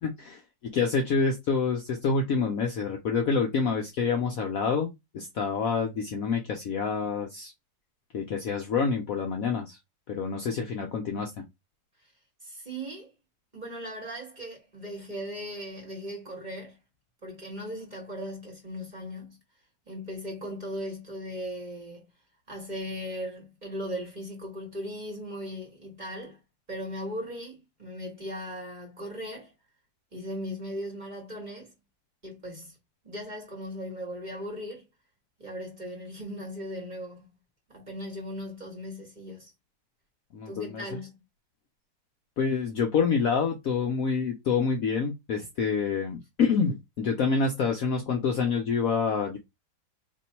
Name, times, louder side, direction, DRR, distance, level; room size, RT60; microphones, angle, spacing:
voice 1, 0.0-7.5 8.1-9.8 10.1-11.3 40.3-40.8 42.4-49.4, left 5 dB, 65° left, 0.9 m, -27 dB
voice 2, 12.4-13.1 13.5-16.8 17.2-19.4 19.9-22.1 22.5-26.4 26.7-29.5 30.1-31.7 32.2-32.7 33.0-34.8 35.4-37.3 37.7-39.5 40.5-41.1, equal, 25° right, 1.3 m, -38 dB
2.9 x 2.6 x 4.3 m
omnidirectional pair, 2.0 m